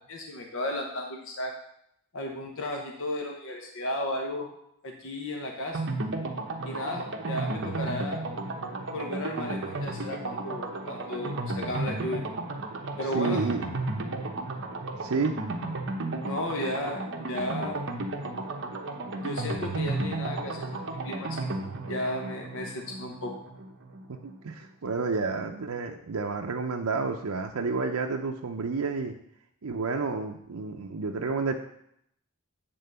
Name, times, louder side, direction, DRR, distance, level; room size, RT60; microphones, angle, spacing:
voice 1, 0.1-1.5 2.1-4.5 4.8-5.9 6.6-8.2 8.9-12.2 13.0-13.4 16.2-17.8 19.2-21.5 21.8-23.3, left 1 dB, 65° left, 2 dB, 1.0 m, -34 dB
sound 1, 5.7-24.4 24.6-24.7 25.0-25.1, right 2 dB, 55° right, 1.0 m, -33 dB
voice 2, 13.1-13.6 15.0-15.4 24.1-29.2 29.6-31.5, right 4 dB, 80° right, 2 dB, 0.6 m, -30 dB
8.7 x 3.8 x 6.7 m, 0.74 s
head